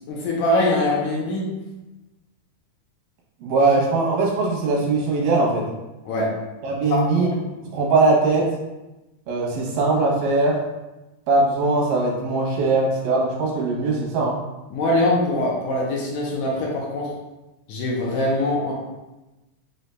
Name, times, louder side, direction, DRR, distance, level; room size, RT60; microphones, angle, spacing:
voice 1, 0.1-1.5 6.1-6.3 6.9-7.4 14.7-17.1 17.7-18.7, left 1 dB, 80° left, -3 dB, 1.8 m, -23 dB
voice 2, 3.4-5.7 6.6-7.3 7.7-8.5 9.3-10.6 11.3-14.4, right 3 dB, 90° right, -3 dB, 2.6 m, -20 dB
6.2 x 2.7 x 2.2 m, 1.0 s
omnidirectional pair, 3.7 m